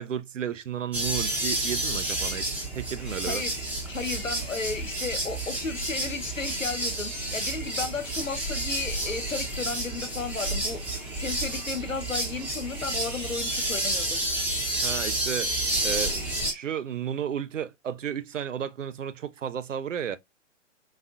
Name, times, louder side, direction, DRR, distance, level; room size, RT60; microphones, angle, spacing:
voice 1, 0.0-3.4 14.8-15.5 15.8-20.2, right 8 dB, 75° right, 0.6 m, -33 dB
sound 1, 0.9-16.5, right 1 dB, 5° right, 0.7 m, -30 dB
voice 2, 3.9-14.2, left 4 dB, 90° left, 0.8 m, -34 dB
4.1 x 2.7 x 2.3 m
figure-of-eight pair, 120°, 38 cm